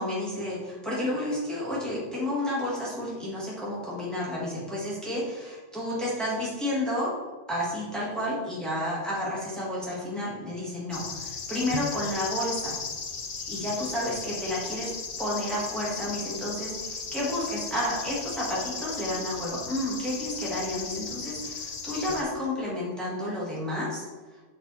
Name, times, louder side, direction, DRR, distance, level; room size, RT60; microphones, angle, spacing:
voice 1, 0.0-7.1 7.5-12.8 13.5-14.9 15.2-24.0, left 1 dB, ahead, -6 dB, 1.7 m, -31 dB
sound 1, 10.9-22.2, left 5 dB, 45° left, 0.6 m, -36 dB
6.3 x 4.9 x 4.1 m, 1.3 s
omnidirectional pair, 1.2 m